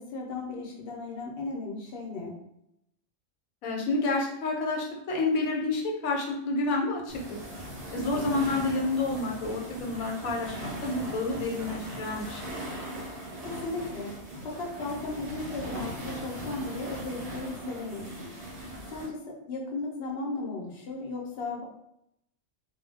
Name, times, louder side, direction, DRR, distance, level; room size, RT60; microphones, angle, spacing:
voice 1, 0.0-2.3 8.0-8.3 13.4-14.1 14.6-18.3 18.9-19.2 19.5-21.6, left 3 dB, 55° left, -1 dB, 0.8 m, -36 dB
voice 2, 3.6-7.2 7.9-12.6, left 3 dB, 85° left, 0 dB, 1.1 m, -29 dB
sound 1, 7.1-19.1, right 1 dB, 50° right, 0.4 m, -39 dB
2.2 x 2.2 x 3.2 m, 0.79 s
omnidirectional pair, 1.4 m